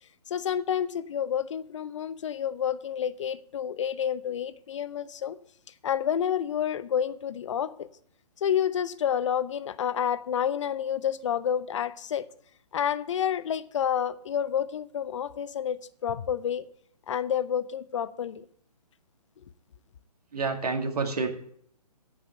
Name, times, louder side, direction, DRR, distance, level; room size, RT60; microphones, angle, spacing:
voice 1, 0.3-5.4 5.8-7.9 8.4-12.3 12.7-16.6 17.1-18.5, left 9 dB, 50° left, 0.7 m, -29 dB
voice 2, 20.3-21.3, right 4 dB, 70° right, 2.2 m, -28 dB
9.9 x 6.4 x 8.1 m
figure-of-eight pair, 145°, 21 cm